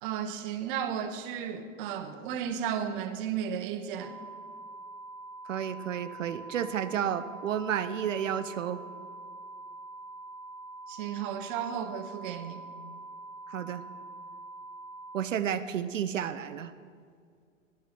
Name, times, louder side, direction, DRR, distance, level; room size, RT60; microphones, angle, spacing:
voice 1, 0.0-4.2 10.9-12.6, right 8 dB, 40° right, 1.0 m, -34 dB
sound 1, 4.0-15.2, right 2 dB, 5° right, 0.3 m, -45 dB
voice 2, 5.5-8.8 13.5-13.8 15.1-16.7, right 9 dB, 75° right, 0.6 m, -31 dB
11.5 x 9.4 x 4.4 m
hypercardioid pair, 110°, 39 cm